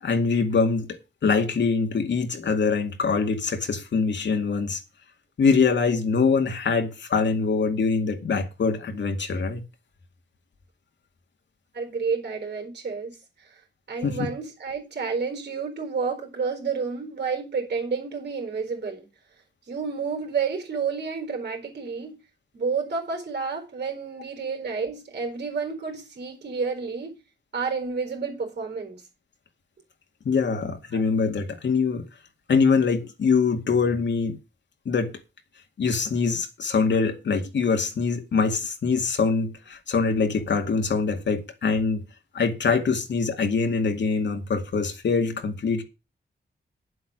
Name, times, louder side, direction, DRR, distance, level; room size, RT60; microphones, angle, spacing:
voice 1, 0.0-4.8 5.4-9.6 14.0-14.2 30.3-32.1 32.5-34.4 34.9-35.2 35.8-42.0 42.3-45.8, left 5 dB, 80° left, 2.2 m, -24 dB
voice 2, 11.7-13.6 13.9-19.1 19.7-22.2 22.5-27.2 27.5-29.0 30.9-31.0, right 5 dB, 60° right, 4.4 m, -30 dB
10.5 x 7.8 x 6.3 m
wide cardioid pair, 170°, 18 cm